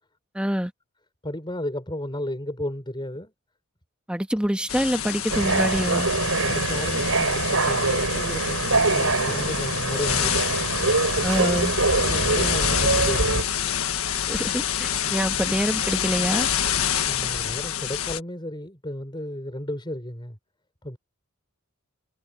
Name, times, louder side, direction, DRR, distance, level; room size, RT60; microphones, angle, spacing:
voice 1, 0.3-0.7 4.1-6.1 11.2-11.7 14.3-16.5, equal, 5° right, 1.5 m, -26 dB
voice 2, 1.2-3.3 6.4-10.5 12.0-13.5 17.0-20.4 20.8-21.0, left 1 dB, 20° left, 6.0 m, -33 dB
sound 1, 4.7-18.2, left 9 dB, 75° left, 1.5 m, -27 dB
sound 2, 5.3-13.4, right 3 dB, 70° right, 5.3 m, -24 dB
head